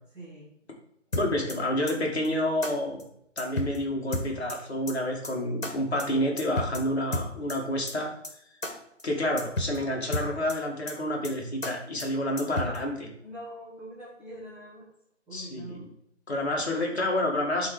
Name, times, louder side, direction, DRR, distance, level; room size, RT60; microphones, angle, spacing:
voice 1, 0.1-0.5 9.7-9.9 13.2-14.9 15.3-15.9, right 1 dB, 5° right, -12 dB, 1.2 m, -43 dB
sound 1, 1.1-1.6 1.9-2.0 2.2-2.3 2.6-2.7 3.0-3.1 3.4-3.8 4.1-4.6 4.9-5.0 5.2-5.3 5.6-5.7 6.0-6.1 6.4-6.8 7.1-7.6 7.9-8.0 8.2-8.3 8.6-8.7 9.0-9.1 9.4-9.8 10.1-10.6 10.9-11.0 11.2-11.3 11.6-11.7 12.0-12.1 12.4-12.8, left 1 dB, 80° left, 2.0 m, -31 dB
voice 2, 1.2-3.0 3.4-8.1 9.0-13.1 15.3-15.8 16.3-17.7, left 1 dB, 55° left, 1 dB, 2.3 m, -29 dB
11.5 x 4.0 x 4.9 m, 0.73 s
figure-of-eight pair, 150°, 38 cm